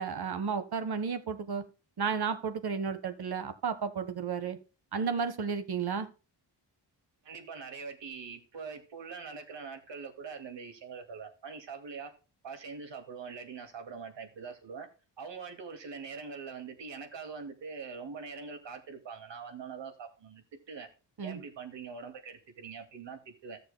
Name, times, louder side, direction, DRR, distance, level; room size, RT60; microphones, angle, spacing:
voice 1, 0.0-1.6 2.0-4.6 4.9-6.1 21.2-21.4, right 6 dB, 60° right, 11 dB, 1.4 m, -33 dB
voice 2, 7.2-12.1 12.4-14.9 15.2-20.9 21.2-23.6, right 5 dB, 75° right, 6 dB, 2.4 m, -43 dB
16.0 x 6.8 x 2.2 m, 0.33 s
wide cardioid pair, 125°, 43 cm